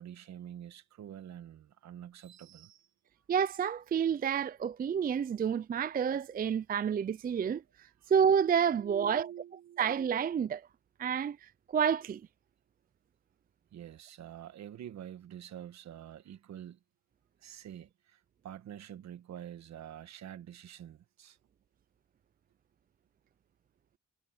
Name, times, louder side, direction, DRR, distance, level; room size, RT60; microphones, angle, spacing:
voice 1, 0.0-2.9 8.8-9.8 13.7-16.8 17.4-21.4, right 10 dB, 65° right, 1.4 m, -46 dB
voice 2, 3.3-7.6 8.1-9.3 9.8-10.6 11.0-12.2, right 7 dB, 30° right, 0.4 m, -29 dB
cardioid pair, 90°, 30 cm